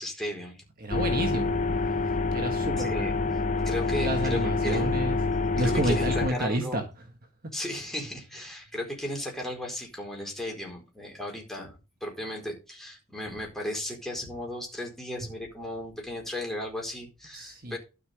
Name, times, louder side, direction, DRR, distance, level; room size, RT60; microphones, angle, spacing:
voice 1, 0.0-0.6 2.8-3.1 3.6-5.0 5.6-6.8 7.5-17.8, left 1 dB, ahead, -1 dB, 4.4 m, -35 dB
voice 2, 0.8-1.6 2.3-3.1 3.9-5.2 5.6-6.8 17.3-17.8, right 1 dB, 40° right, 4 dB, 1.6 m, -30 dB
sound 1, 0.9-6.3, left 3 dB, 35° left, 0.7 m, -27 dB
12.5 x 5.6 x 4.9 m, 0.30 s
head